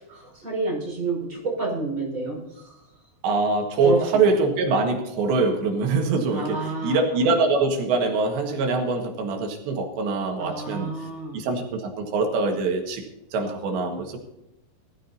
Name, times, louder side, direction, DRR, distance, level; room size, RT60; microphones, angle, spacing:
voice 1, 0.0-2.7 3.8-4.2 6.3-7.3 10.4-11.4, right 3 dB, 20° right, -4 dB, 6.3 m, -29 dB
voice 2, 3.2-6.6 6.8-10.9 11.3-13.0 13.3-14.2, right 3 dB, 80° right, 3 dB, 3.8 m, -23 dB
20.0 x 14.0 x 2.8 m, 0.90 s
omnidirectional pair, 5.0 m